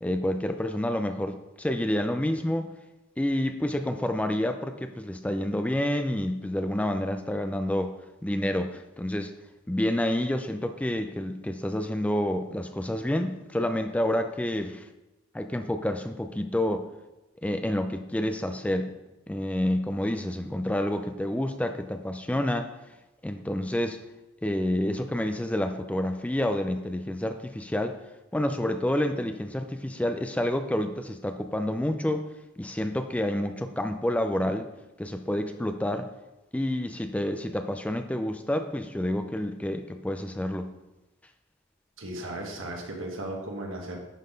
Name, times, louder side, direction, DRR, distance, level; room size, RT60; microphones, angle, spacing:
voice 1, 0.0-2.7 3.2-7.9 8.2-9.3 9.7-14.9 15.3-16.9 17.4-18.9 19.3-22.7 23.2-24.0 24.4-28.0 28.3-32.3 32.6-34.7 35.0-36.1 36.5-40.7, left 1 dB, 5° left, 7 dB, 0.4 m, -28 dB
voice 2, 42.0-44.0, right 1 dB, 85° right, 0 dB, 1.7 m, -36 dB
10.5 x 4.0 x 5.1 m, 1.0 s
head